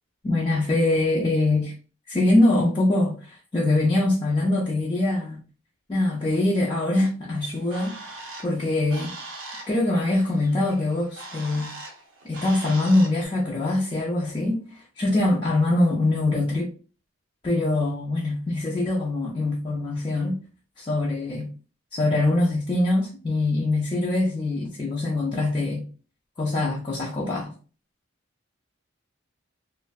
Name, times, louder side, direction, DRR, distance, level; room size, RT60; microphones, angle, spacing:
voice 1, 0.2-1.7 2.1-5.4 5.9-9.1 9.7-11.7 12.2-16.7 17.4-20.4 20.8-21.5 21.9-25.9 26.4-27.5, left 2 dB, 20° left, 0.4 m, -23 dB
Bird, 7.4-13.3, right 2 dB, 70° right, 0.6 m, -41 dB
2.5 x 2.1 x 2.3 m
head